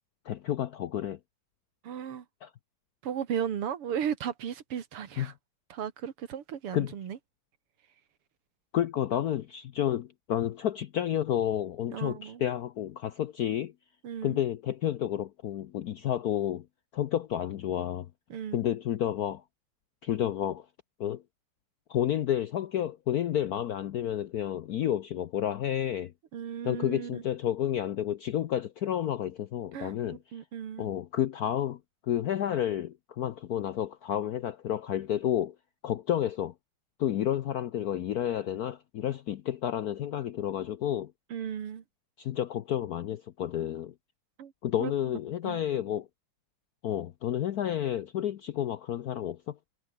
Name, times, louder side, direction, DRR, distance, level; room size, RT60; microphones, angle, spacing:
voice 1, 0.2-1.2 2.4-2.5 5.2-5.3 6.7-6.9 8.7-13.7 14.2-16.7 16.9-18.1 18.5-19.4 20.0-20.7 21.0-21.2 21.9-26.1 26.6-30.2 30.8-35.5 35.8-36.5 37.0-41.1 42.2-43.9 44.6-46.1 46.8-49.6, left 11 dB, 70° left, 0.8 m, -30 dB
voice 2, 1.8-2.2 3.0-5.3 5.7-7.2 11.9-12.4 14.0-14.4 18.3-18.6 26.3-27.2 29.7-30.9 41.3-41.8 44.4-44.5 44.8-44.9 45.4-45.6, right 8 dB, 85° right, 2.7 m, -35 dB
omnidirectional pair, 2.4 m